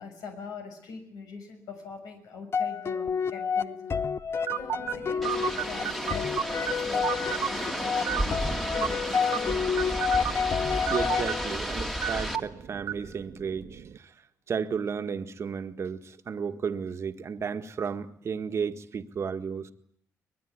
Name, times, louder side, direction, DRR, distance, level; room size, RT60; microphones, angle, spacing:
voice 1, 0.0-3.8 4.5-6.3 6.8-10.1 16.4-16.7, left 5 dB, 80° left, 6.8 m, -43 dB
sound 1, 2.5-11.8, left 6 dB, 40° left, 1.1 m, -30 dB
sound 2, 4.5-14.0, right 9 dB, 65° right, 1.3 m, -35 dB
sound 3, 5.2-12.4, equal, 5° left, 2.0 m, -33 dB
voice 2, 10.9-14.1 14.5-19.7, right 6 dB, 45° right, 1.6 m, -33 dB
23.5 x 20.5 x 9.7 m
cardioid pair, 110°, 6 cm